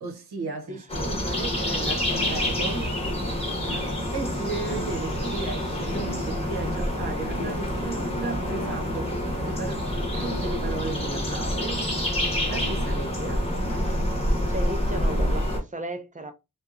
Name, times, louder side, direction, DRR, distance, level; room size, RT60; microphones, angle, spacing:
voice 1, 0.0-3.0 4.1-9.8 10.2-11.9 12.5-13.5, right 4 dB, 90° right, 0.9 m, -35 dB
sound 1, 0.9-15.6, equal, 15° left, 0.8 m, -27 dB
sound 2, 2.1-2.8 3.6-4.4 4.7-5.4 5.9-6.7 7.2-8.1 8.5-9.0 10.1-10.7 12.4-13.2 13.7-14.2 14.9-15.5, left 1 dB, 50° left, 0.7 m, -40 dB
voice 2, 14.5-16.3, right 1 dB, 20° right, 0.4 m, -35 dB
2.7 x 2.3 x 2.4 m
wide cardioid pair, 170°, 38 cm